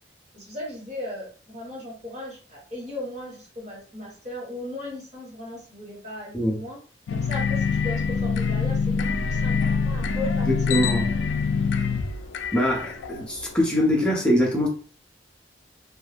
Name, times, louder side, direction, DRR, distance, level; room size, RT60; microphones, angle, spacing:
voice 1, 0.3-6.8 7.1-11.2 11.7-11.9, left 1 dB, 40° right, 1.3 m, -37 dB
sound 1, 7.1-13.6, left 5 dB, 85° left, 0.3 m, -25 dB
voice 2, 10.4-11.1 12.5-14.7, equal, 5° left, 0.6 m, -23 dB
2.3 x 2.1 x 3.3 m
head